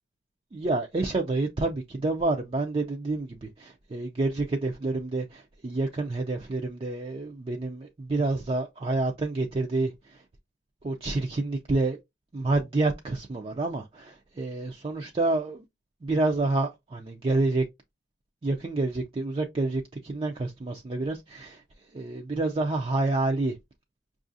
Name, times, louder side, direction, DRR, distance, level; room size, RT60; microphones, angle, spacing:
voice 1, 0.5-10.2 10.8-12.0 12.3-15.6 16.0-17.6 18.4-21.6 21.9-23.6, right 2 dB, 30° right, 0.4 m, -28 dB
5.4 x 2.4 x 2.5 m
head